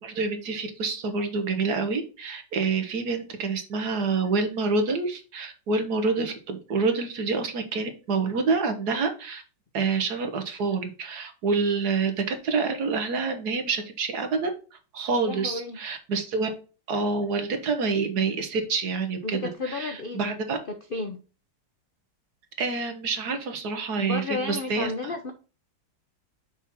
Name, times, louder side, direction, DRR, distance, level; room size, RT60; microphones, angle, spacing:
voice 1, 0.0-9.4 9.7-14.5 14.9-16.5 16.9-19.4 19.7-20.6 22.6-25.1, right 4 dB, 60° right, 1.6 m, -27 dB
voice 2, 15.1-15.8 19.2-20.4 20.7-21.2 24.0-25.3, left 3 dB, 55° left, 0.6 m, -33 dB
6.0 x 4.4 x 4.2 m
omnidirectional pair, 2.0 m